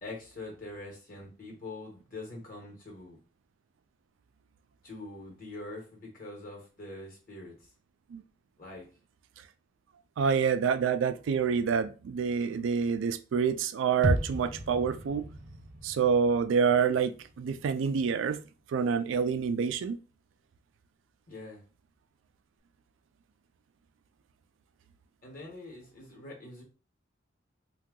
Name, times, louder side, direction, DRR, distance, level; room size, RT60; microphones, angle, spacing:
voice 1, 0.0-3.2 4.8-7.5 8.6-8.9 21.3-21.6 25.2-26.6, left 2 dB, 45° left, 1.1 m, -44 dB
voice 2, 10.2-15.3 15.8-18.4 18.7-20.0, right 6 dB, 85° right, 0.3 m, -27 dB
sound 1, 14.0-18.0 18.3-18.4, right 1 dB, 65° right, 0.8 m, -35 dB
2.7 x 2.3 x 3.6 m
head